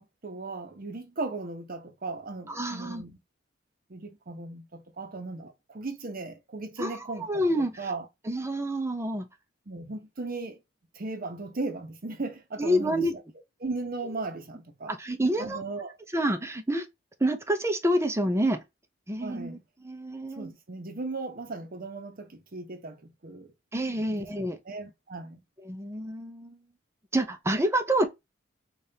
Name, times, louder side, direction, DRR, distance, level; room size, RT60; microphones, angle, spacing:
voice 1, 0.0-3.2 3.9-7.3 7.6-8.1 9.7-10.6 10.9-13.1 13.6-14.9 15.4-16.0 19.2-19.6 20.4-23.5 24.1-24.3 24.7-25.4, right 3 dB, 50° right, 0.8 m, -37 dB
voice 2, 2.5-3.0 6.8-7.8 8.3-9.3 12.6-13.1 14.9-15.6 16.1-16.9 17.2-18.6 19.1-19.6 19.8-20.5 23.7-24.6 25.7-26.6 27.1-28.1, right 1 dB, 15° right, 0.6 m, -28 dB
5.0 x 2.5 x 2.8 m
head